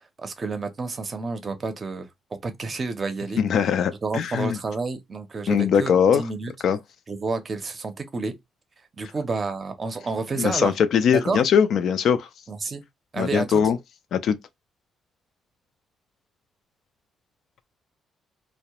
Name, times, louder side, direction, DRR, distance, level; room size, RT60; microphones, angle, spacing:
voice 1, 0.2-3.4 4.0-6.5 7.1-8.3 9.0-10.7 11.1-11.4 12.5-12.8 13.1-13.6, right 4 dB, 35° right, 0.6 m, -30 dB
voice 2, 3.4-4.6 5.5-6.2 6.6-6.8 10.3-12.3 13.2-13.8 14.1-14.4, left 7 dB, 70° left, 0.3 m, -21 dB
2.2 x 2.0 x 2.8 m
cardioid pair, 90°, 0 cm